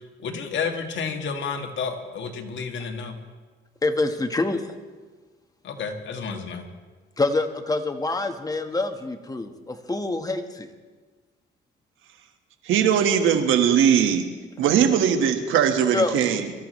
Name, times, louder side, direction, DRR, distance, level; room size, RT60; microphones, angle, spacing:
voice 1, 0.2-3.2 5.6-6.6, left 5 dB, 70° left, 4 dB, 1.7 m, -30 dB
voice 2, 3.8-4.6 7.2-10.7 15.9-16.1, left 2 dB, 20° left, 6 dB, 1.4 m, -26 dB
voice 3, 12.6-14.3 14.6-16.5, right 8 dB, 85° right, 6 dB, 1.5 m, -20 dB
24.0 x 14.0 x 3.2 m, 1.4 s
cardioid pair, 90°, 20 cm